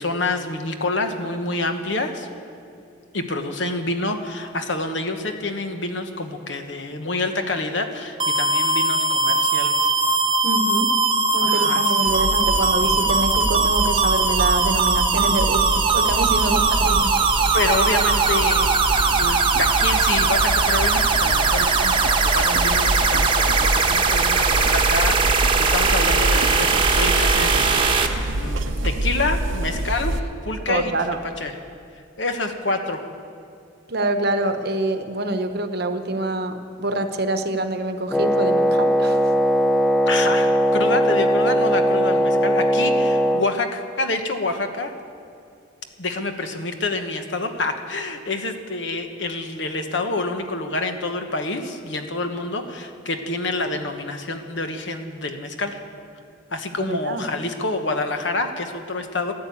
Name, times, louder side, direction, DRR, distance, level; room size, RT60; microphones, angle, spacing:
voice 1, 0.0-2.3 3.1-9.9 11.4-12.1 12.8-13.0 16.4-16.7 17.5-30.9 31.4-31.5 32.2-33.1 40.1-44.9 46.0-55.8 56.5-59.3, left 2 dB, 70° left, 6 dB, 1.2 m, -27 dB
sound 1, 8.2-28.1, right 4 dB, 25° right, 1.0 m, -20 dB
voice 2, 10.4-11.0 11.3-17.2 30.7-31.2 33.9-39.3 56.8-57.3, right 2 dB, 55° right, 8 dB, 0.9 m, -26 dB
sound 2, 12.1-30.2, right 1 dB, 85° right, 0.8 m, -26 dB
Wind instrument woodwind instrument, 38.1-43.5, equal, ahead, 0.5 m, -19 dB
14.0 x 10.5 x 8.5 m, 2.4 s
head